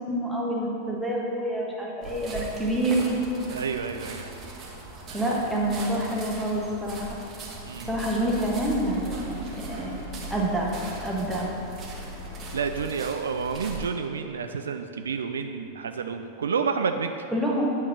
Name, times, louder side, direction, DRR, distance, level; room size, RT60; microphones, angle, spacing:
voice 1, 0.1-3.0 5.1-7.2 7.9-10.0 10.3-10.8 11.0-11.5 17.3-17.6, right 1 dB, ahead, -5 dB, 1.4 m, -27 dB
sound 1, 2.0-13.9, right 2 dB, 30° right, 1.3 m, -40 dB
voice 2, 3.5-4.3 5.1-5.2 7.6-8.0 12.5-17.1, right 5 dB, 70° right, 6 dB, 0.3 m, -30 dB
sound 2, 7.8-12.9, right 1 dB, 70° left, 1.9 m, -40 dB
9.1 x 3.6 x 6.1 m, 2.7 s
figure-of-eight pair, 90°, 0 cm